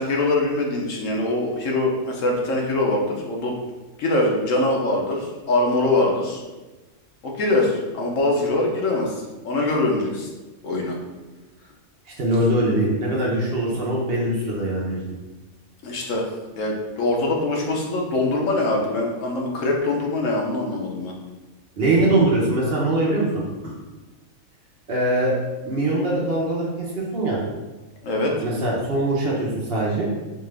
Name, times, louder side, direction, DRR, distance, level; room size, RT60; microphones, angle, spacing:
voice 1, 0.0-3.5 4.0-6.4 7.2-10.3 10.6-10.9 15.8-16.3 16.6-21.1 28.0-28.3, left 2 dB, 70° left, -1 dB, 1.1 m, -23 dB
voice 2, 12.2-15.0 21.8-23.7 24.9-25.4 25.6-27.4 28.4-30.1, right 1 dB, 50° right, -4 dB, 0.9 m, -22 dB
4.4 x 2.4 x 3.2 m, 1.2 s
omnidirectional pair, 1.4 m